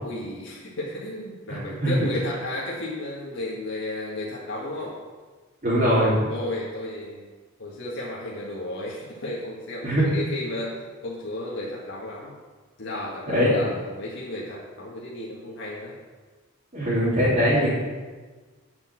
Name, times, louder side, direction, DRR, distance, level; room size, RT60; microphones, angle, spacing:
voice 1, 0.0-5.0 6.3-7.3 7.6-12.3 12.8-16.0, left 1 dB, 60° left, -5 dB, 1.8 m, -33 dB
voice 2, 1.5-1.9 5.6-6.3 9.8-10.2 13.3-13.7 16.7-17.7, equal, 35° right, -11 dB, 3.1 m, -21 dB
8.7 x 6.4 x 7.5 m, 1.4 s
head